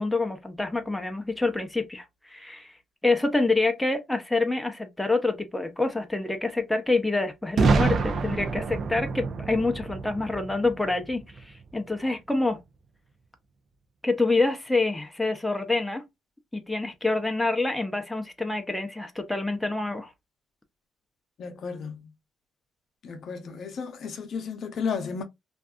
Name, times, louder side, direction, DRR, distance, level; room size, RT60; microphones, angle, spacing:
voice 1, 0.0-2.7 3.0-12.6 14.0-16.0 16.5-20.1, left 3 dB, 5° left, 0.5 m, -27 dB
Boom, 7.6-11.4, right 4 dB, 55° right, 0.5 m, -26 dB
voice 2, 21.4-22.1 23.0-25.2, left 6 dB, 60° left, 0.6 m, -33 dB
2.6 x 2.3 x 2.3 m
cardioid pair, 90°, 0 cm